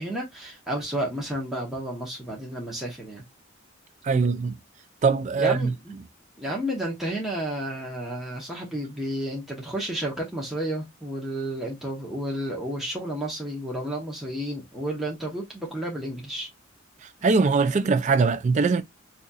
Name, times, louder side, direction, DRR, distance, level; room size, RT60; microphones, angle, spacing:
voice 1, 0.0-3.2 5.4-5.9 6.4-16.5, right 1 dB, ahead, 0.9 m, -31 dB
voice 2, 4.0-4.6 5.0-5.7 17.0-18.8, right 4 dB, 35° right, 0.4 m, -22 dB
4.0 x 2.8 x 2.3 m
head